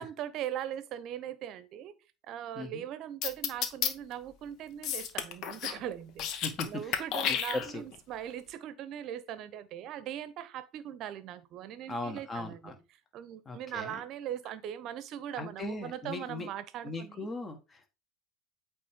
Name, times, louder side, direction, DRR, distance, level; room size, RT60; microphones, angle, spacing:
voice 1, 0.0-1.9 2.3-6.3 6.7-12.7 13.1-17.3, right 10 dB, 50° right, 0.8 m, -40 dB
sound 1, 3.2-3.9 4.8-5.8 6.1-6.7 6.9-8.0, left 9 dB, 55° left, 0.8 m, -31 dB
voice 2, 6.4-7.8 11.9-12.7 13.4-14.0 15.3-16.5 16.8-17.9, left 2 dB, 25° left, 1.6 m, -39 dB
8.4 x 3.2 x 3.7 m
hypercardioid pair, 75°, 0 cm